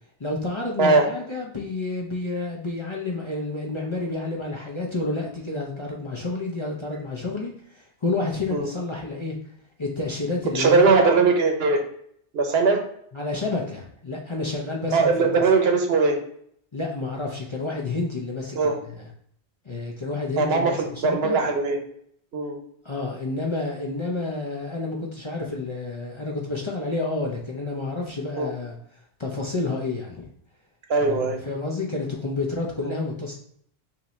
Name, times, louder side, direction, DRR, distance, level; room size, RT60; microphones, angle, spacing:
voice 1, 0.2-9.4 9.8-10.9 13.1-15.4 16.7-19.1 19.6-21.4 22.8-28.8 29.2-30.3 31.0-33.3, left 3 dB, 35° left, -2 dB, 0.6 m, -30 dB
voice 2, 10.5-11.8 12.3-12.8 14.9-16.2 18.5-18.7 20.4-21.8 22.3-22.6 28.4-28.5 30.9-31.4 32.8-32.9, right 4 dB, 70° right, 4 dB, 1.0 m, -20 dB
5.7 x 2.7 x 3.1 m, 0.66 s
omnidirectional pair, 1.1 m